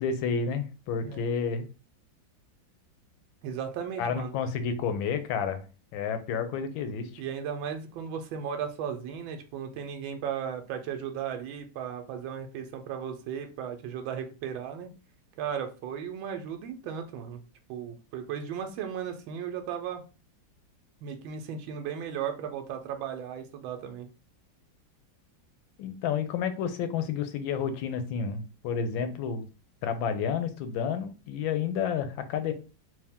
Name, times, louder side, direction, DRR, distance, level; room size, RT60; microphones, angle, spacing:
voice 1, 0.0-1.6 4.0-5.7 5.9-7.1 25.8-29.4 29.8-32.5, left 6 dB, 85° left, 9 dB, 1.4 m, -30 dB
voice 2, 3.4-4.4 7.2-14.9 15.4-17.4 17.7-20.0 21.0-24.1, right 8 dB, 90° right, 5 dB, 1.4 m, -36 dB
3.4 x 2.7 x 3.5 m, 0.33 s
omnidirectional pair, 2.1 m